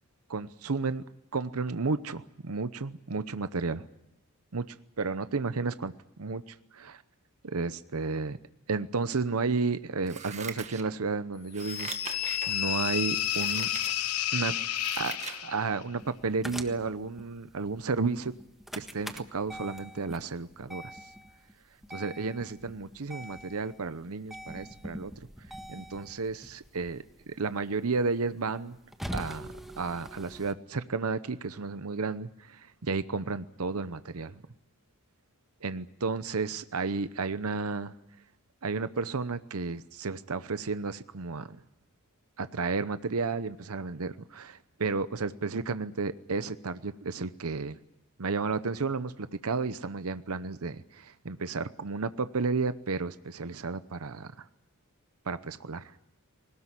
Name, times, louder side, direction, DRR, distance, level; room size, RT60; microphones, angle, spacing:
voice 1, 0.3-1.0 1.3-3.9 4.5-7.0 7.4-8.4 8.7-11.9 12.5-13.7 14.3-14.6 15.0-18.3 18.7-21.0 21.9-25.3 25.7-28.8 29.1-29.5 29.8-34.4 35.6-37.9 38.6-41.6 42.4-47.8 48.2-54.5 55.3-55.9, right 4 dB, 75° right, 13 dB, 0.8 m, -32 dB
Scissors, 10.0-11.1 11.5-12.5 13.1-13.9 14.4-15.4 15.8-15.9, right 6 dB, 30° right, 1.7 m, -41 dB
sound 1, 11.6-15.8, left 11 dB, 85° left, 0.9 m, -31 dB
sound 2, 16.0-30.5, equal, ahead, 1.5 m, -44 dB
21.0 x 19.0 x 9.8 m, 0.85 s
head